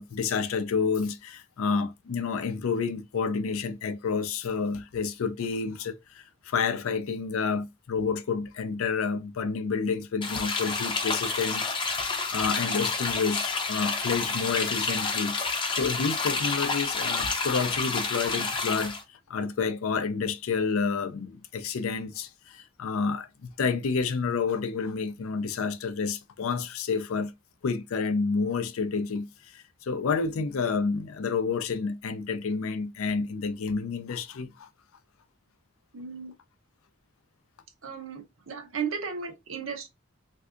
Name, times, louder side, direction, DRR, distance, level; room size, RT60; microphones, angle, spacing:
voice 1, 0.0-15.3 15.8-18.9 19.3-27.3 27.6-29.3 29.5-34.7, left 5 dB, 90° left, 0.5 m, -29 dB
sound 1, 10.2-19.0, left 4 dB, 25° left, 0.5 m, -29 dB
voice 2, 35.9-36.3 37.8-39.9, right 6 dB, 75° right, 0.8 m, -35 dB
3.4 x 2.6 x 2.4 m
head